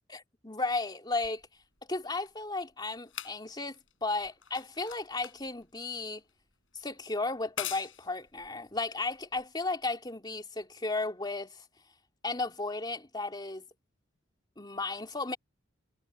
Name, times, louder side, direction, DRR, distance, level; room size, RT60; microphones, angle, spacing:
voice 1, 0.1-1.4 1.9-6.2 6.7-11.6 12.2-13.7 14.6-15.4, left 3 dB, 20° left, 3.4 m, -34 dB
sound 1, 1.2-9.8 10.7-10.8, left 11 dB, 80° left, 7.0 m, -46 dB
head